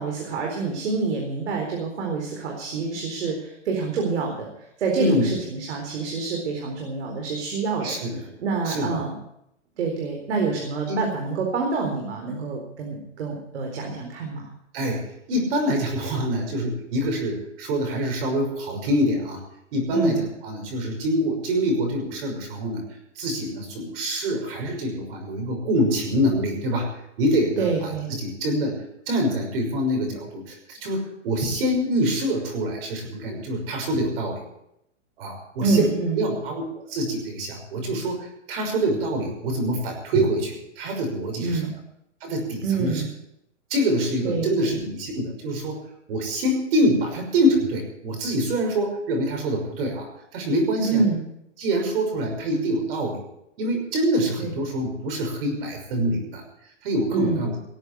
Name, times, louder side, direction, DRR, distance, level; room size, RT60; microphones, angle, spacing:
voice 1, 0.0-4.5 4.8-8.0 8.4-9.1 9.8-14.5 19.9-20.2 27.6-28.1 35.6-36.2 41.4-41.7 42.6-43.0 44.2-44.8 50.8-51.2 54.4-54.5 57.1-57.4, right 4 dB, 65° right, 1 dB, 4.3 m, -27 dB
voice 2, 5.0-5.3 7.8-8.2 8.7-9.0 10.9-11.0 14.7-19.4 19.7-22.8 23.2-26.9 27.2-28.8 29.1-34.4 35.2-35.9 36.2-41.6 42.2-43.0 43.7-45.8 46.1-51.0 51.6-53.2 53.6-56.4 56.8-57.5, equal, 50° right, 3 dB, 6.1 m, -25 dB
19.0 x 8.2 x 8.3 m, 0.80 s
hypercardioid pair, 150°, 36 cm